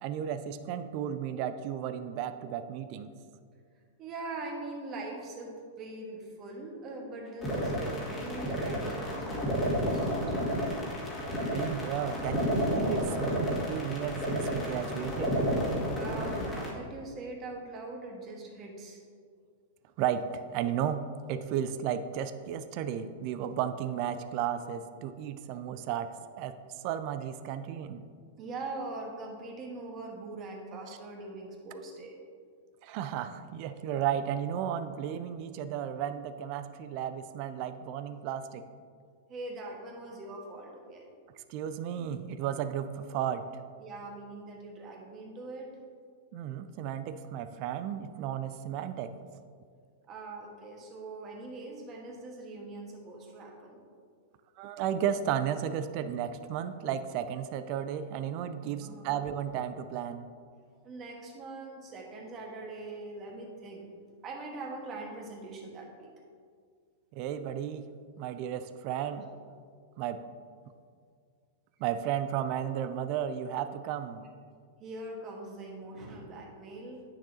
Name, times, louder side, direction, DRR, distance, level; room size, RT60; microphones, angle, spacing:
voice 1, 0.0-3.1 11.5-15.3 20.0-26.6 26.8-28.1 32.8-38.6 41.5-43.4 46.3-49.1 54.6-60.3 67.1-67.9 68.2-69.3 70.0-70.2 71.8-74.3, right 9 dB, 50° right, 11 dB, 0.4 m, -34 dB
voice 2, 4.0-10.4 15.9-19.0 28.4-32.2 39.3-41.1 43.8-45.7 50.1-53.8 58.8-59.2 60.8-63.9 64.2-66.1 69.0-69.2 74.8-77.0, right 2 dB, 35° right, 0 dB, 1.5 m, -42 dB
sound 1, 7.4-16.7, equal, 25° left, 1.9 m, -31 dB
9.4 x 6.5 x 2.9 m, 2.1 s
hypercardioid pair, 110°, 0 cm